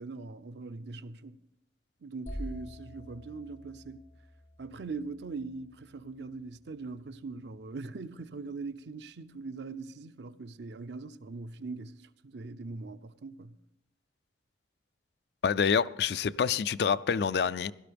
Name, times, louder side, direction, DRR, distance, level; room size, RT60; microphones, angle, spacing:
voice 1, 0.0-1.4 2.0-4.0 4.6-13.6, right 3 dB, 70° right, 0.5 m, -41 dB
sound 1, 2.3-6.0, equal, 80° left, 4.7 m, -46 dB
voice 2, 15.4-17.7, left 6 dB, 65° left, 0.4 m, -27 dB
17.0 x 12.5 x 3.4 m
head